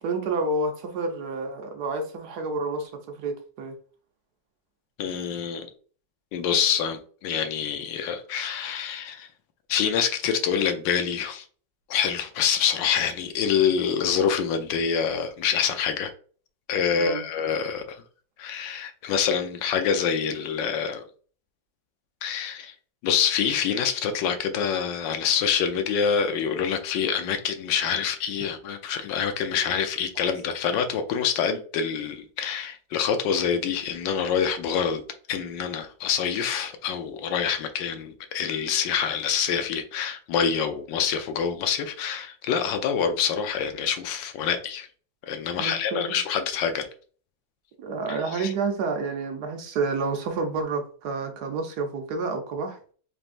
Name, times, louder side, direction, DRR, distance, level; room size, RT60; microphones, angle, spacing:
voice 1, 0.0-3.7 16.9-17.2 30.2-30.3 45.6-46.2 47.8-52.8, right 3 dB, 65° right, 1.2 m, -29 dB
voice 2, 5.0-5.7 6.3-9.3 9.7-11.4 11.9-16.1 16.7-18.0 18.4-21.1 22.2-22.7 23.0-35.0 35.3-44.9 45.3-46.9 48.1-48.5, left 7 dB, 90° left, 1.4 m, -26 dB
4.1 x 3.5 x 2.5 m
omnidirectional pair, 1.9 m